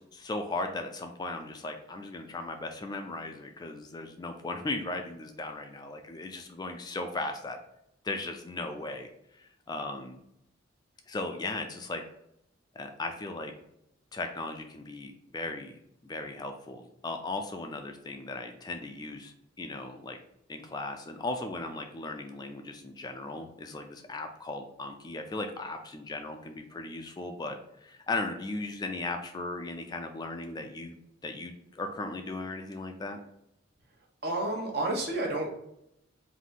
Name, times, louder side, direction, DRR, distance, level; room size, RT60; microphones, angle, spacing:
voice 1, 0.0-7.6 8.0-9.1 9.4-10.2 11.1-12.0 12.8-13.5 14.1-15.8 16.0-20.2 20.5-31.0 31.2-33.2, left 2 dB, 20° left, 5 dB, 0.3 m, -37 dB
voice 2, 34.2-35.6, right 2 dB, 55° right, 0 dB, 1.0 m, -30 dB
4.0 x 2.7 x 3.6 m, 0.77 s
head